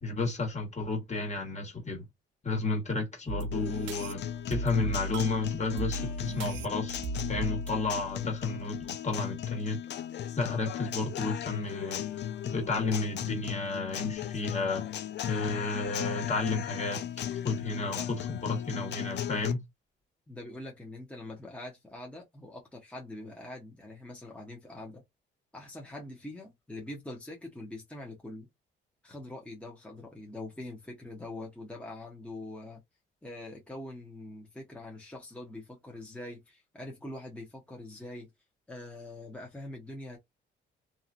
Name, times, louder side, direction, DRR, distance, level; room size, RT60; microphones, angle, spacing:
voice 1, 0.0-2.0 2.4-4.2 4.5-9.8 10.4-12.0 12.5-14.8 15.2-17.0 17.3-19.6, left 3 dB, 35° left, 1.6 m, -32 dB
sound 1, 3.3-8.9, right 1 dB, 70° right, 0.4 m, -38 dB
Guitar, 3.5-19.5, left 10 dB, 60° left, 0.5 m, -36 dB
voice 2, 20.3-25.0 25.5-28.5 29.0-32.8 33.2-38.3 38.7-40.2, left 1 dB, 5° left, 1.0 m, -43 dB
2.8 x 2.3 x 2.5 m
cardioid pair, 90°, 20 cm